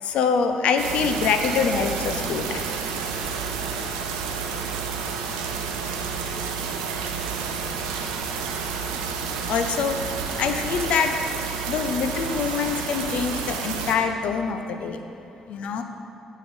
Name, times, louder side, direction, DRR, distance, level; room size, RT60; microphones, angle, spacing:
voice 1, 0.0-2.6 9.5-10.0 10.4-11.2 11.7-15.0 15.5-15.8, left 6 dB, 60° left, 7 dB, 0.6 m, -24 dB
sound 1, 0.8-13.9, right 6 dB, 75° right, 0.7 m, -30 dB
9.9 x 5.7 x 6.8 m, 2.9 s
figure-of-eight pair, 45°, 2 cm